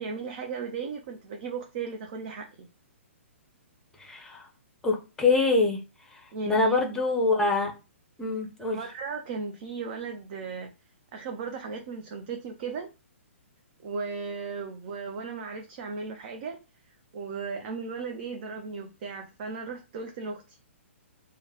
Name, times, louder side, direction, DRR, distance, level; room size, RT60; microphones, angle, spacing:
voice 1, 0.0-2.7 6.3-6.8 8.6-10.7 11.1-12.9 13.8-16.6 17.1-20.6, right 4 dB, 40° right, 4 dB, 0.5 m, -36 dB
voice 2, 4.0-4.5 4.8-5.8 6.1-6.2 6.5-7.7 8.2-8.8, left 3 dB, 10° left, 2 dB, 0.7 m, -25 dB
3.0 x 2.2 x 3.7 m, 0.29 s
figure-of-eight pair, 120°, 7 cm